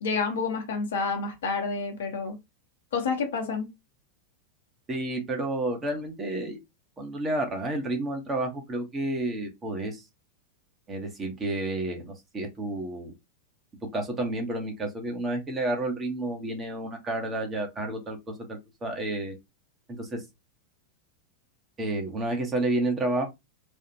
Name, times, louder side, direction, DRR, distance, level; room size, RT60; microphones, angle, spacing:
voice 1, 0.0-2.4 2.9-3.7, left 4 dB, 60° left, 1.0 m, -29 dB
voice 2, 4.9-6.6 7.0-10.0 10.9-13.1 13.8-19.3 20.0-20.2 21.8-23.3, right 2 dB, 20° right, 1.0 m, -30 dB
3.4 x 2.4 x 2.8 m
figure-of-eight pair, 90°, 0 cm